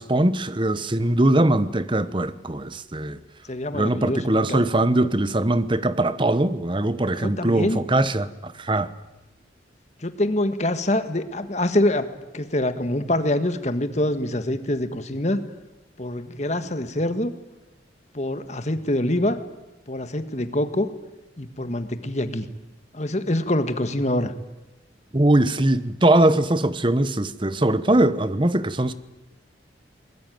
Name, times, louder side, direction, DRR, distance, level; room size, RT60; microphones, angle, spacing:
voice 1, 0.0-3.2 3.7-8.9 25.1-28.9, right 1 dB, 25° right, 1.1 m, -21 dB
voice 2, 3.5-4.7 7.2-7.8 10.0-12.1 12.3-15.4 16.0-17.3 18.1-19.4 19.9-20.9 21.4-22.4 22.9-24.3, left 1 dB, 40° left, 1.7 m, -25 dB
23.5 x 21.5 x 9.4 m
head